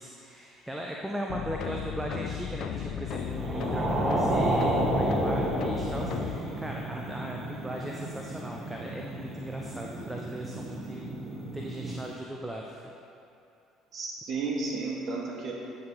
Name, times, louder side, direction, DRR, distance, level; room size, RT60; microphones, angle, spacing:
voice 1, 0.0-12.9, right 1 dB, 10° right, -1 dB, 0.6 m, -38 dB
sound 1, 1.3-6.4, left 9 dB, 55° left, 0.3 m, -35 dB
sound 2, 3.3-12.0, right 1 dB, 30° right, 1.0 m, -31 dB
voice 2, 13.9-15.5, right 3 dB, 45° right, -1 dB, 1.2 m, -32 dB
8.3 x 4.0 x 4.6 m, 2.7 s
figure-of-eight pair, 55°, 0 cm